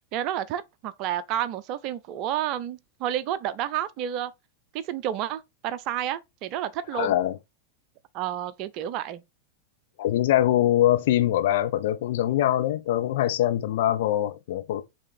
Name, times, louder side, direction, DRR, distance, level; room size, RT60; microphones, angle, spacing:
voice 1, 0.1-4.3 4.7-7.1 8.1-9.2, right 11 dB, 40° right, 0.7 m, -30 dB
voice 2, 6.9-7.4 10.0-14.8, left 12 dB, 55° left, 0.9 m, -23 dB
8.6 x 3.6 x 4.4 m
figure-of-eight pair, 90°, 0 cm